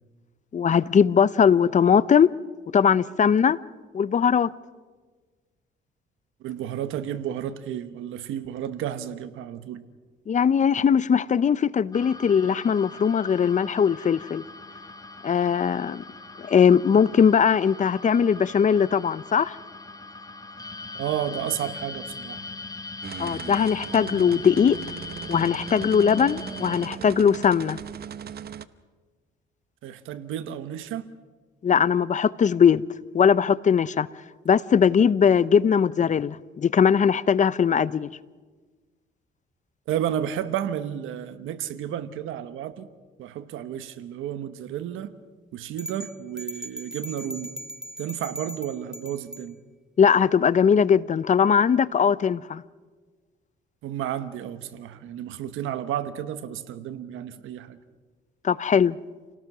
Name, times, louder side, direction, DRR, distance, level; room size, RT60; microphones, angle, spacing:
voice 1, 0.5-2.3 2.7-3.6 3.9-4.5 10.3-14.4 15.2-16.0 16.4-19.6 23.2-24.8 25.3-27.8 31.6-32.8 33.1-34.1 34.5-38.1 50.0-52.6 58.4-59.0, left 7 dB, 40° left, 0.6 m, -20 dB
voice 2, 6.4-9.9 20.9-22.5 29.8-31.1 39.9-42.9 43.2-45.1 45.5-47.5 48.0-49.6 53.8-57.8, right 10 dB, 85° right, 1.1 m, -32 dB
sound 1, 11.9-26.9, left 3 dB, 20° left, 1.4 m, -40 dB
sound 2, 23.0-28.7, right 8 dB, 50° right, 0.9 m, -38 dB
sound 3, 45.8-49.5, right 1 dB, 5° right, 0.6 m, -39 dB
28.5 x 18.5 x 6.1 m
cardioid pair, 90°, 20 cm